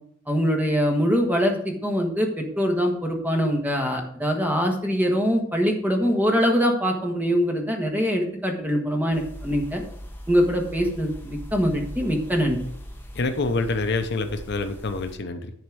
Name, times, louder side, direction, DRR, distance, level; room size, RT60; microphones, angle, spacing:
voice 1, 0.3-9.8 10.3-12.6, equal, 10° right, 2 dB, 1.5 m, -23 dB
sound 1, 9.1-15.2, equal, 10° left, 1.3 m, -40 dB
voice 2, 13.1-15.5, left 3 dB, 55° left, 8 dB, 0.7 m, -26 dB
11.0 x 4.3 x 6.2 m, 0.67 s
head